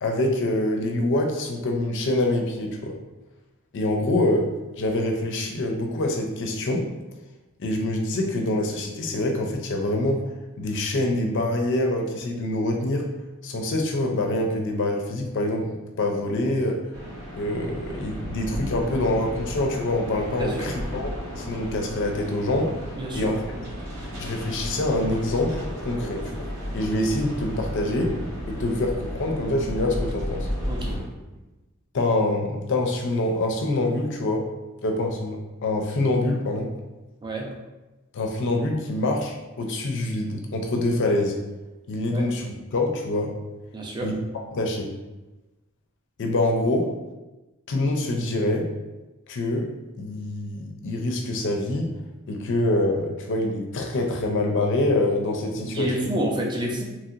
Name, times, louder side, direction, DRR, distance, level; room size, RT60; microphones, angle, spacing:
voice 1, 0.0-3.0 3.7-4.5 4.8-6.9 7.6-10.2 10.6-13.1 13.4-15.7 16.0-16.8 17.3-22.7 23.1-23.4 24.2-26.2 26.7-28.2 28.5-30.5 31.9-34.5 34.8-36.7 38.1-41.4 41.9-43.3 44.0-44.1 44.5-44.9 46.2-46.9 47.7-48.7 49.3-49.7 50.0-51.9 52.3-55.9, left 1 dB, 55° left, 2 dB, 0.5 m, -25 dB
sound 1, 16.9-31.0, equal, 80° right, 1.1 m, -33 dB
voice 2, 23.0-23.3 30.6-31.0 37.2-37.5 42.1-42.2 43.7-44.1 55.7-56.8, right 1 dB, 20° right, 0 dB, 0.4 m, -28 dB
3.0 x 2.7 x 2.5 m, 1.1 s
head